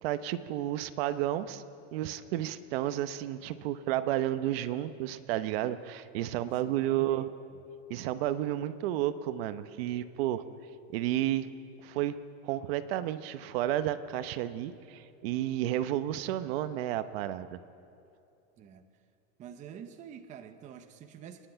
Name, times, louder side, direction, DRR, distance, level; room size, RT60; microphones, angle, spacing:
voice 1, 0.0-1.6 1.9-7.3 7.9-10.4 10.9-11.5 11.8-12.2 12.4-17.6, right 13 dB, 55° right, 0.9 m, -31 dB
voice 2, 6.4-7.2 18.6-18.9 19.4-21.5, right 8 dB, 20° right, 0.8 m, -47 dB
28.0 x 10.5 x 9.0 m
supercardioid pair, 165°, 35 cm